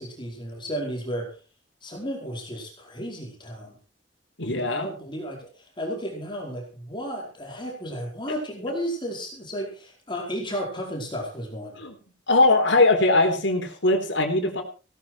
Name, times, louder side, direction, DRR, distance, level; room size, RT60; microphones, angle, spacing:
voice 1, 0.0-1.4 1.8-3.8 4.7-11.8, equal, 25° left, 0 dB, 4.7 m, -33 dB
voice 2, 4.4-4.9 11.8-11.9 12.3-14.6, left 2 dB, 70° left, 5 dB, 4.1 m, -20 dB
17.5 x 13.5 x 4.6 m, 0.35 s
head